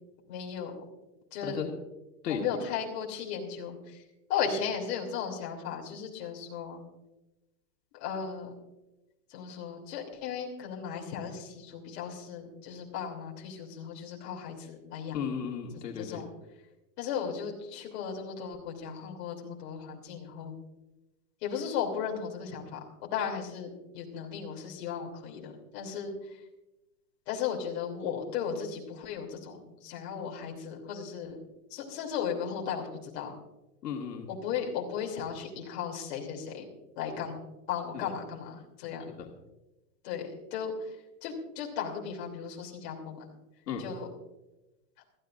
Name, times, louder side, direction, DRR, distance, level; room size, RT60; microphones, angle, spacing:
voice 1, 0.3-0.8 1.3-1.6 2.3-4.0 4.3-6.8 7.9-8.5 9.3-15.2 15.7-16.2 17.0-20.5 21.4-22.8 23.1-26.4 27.3-31.4 31.7-33.3 34.3-36.6 37.0-37.4 37.7-39.1 40.0-40.9 41.2-43.2 43.8-44.1, left 7 dB, 40° left, -1 dB, 3.1 m, -36 dB
voice 2, 15.1-16.2 33.8-34.3 37.9-38.1 39.2-39.3 43.7-43.9, left 7 dB, 85° left, 1 dB, 2.3 m, -35 dB
21.0 x 14.0 x 2.6 m, 1.0 s
supercardioid pair, 160°, 48 cm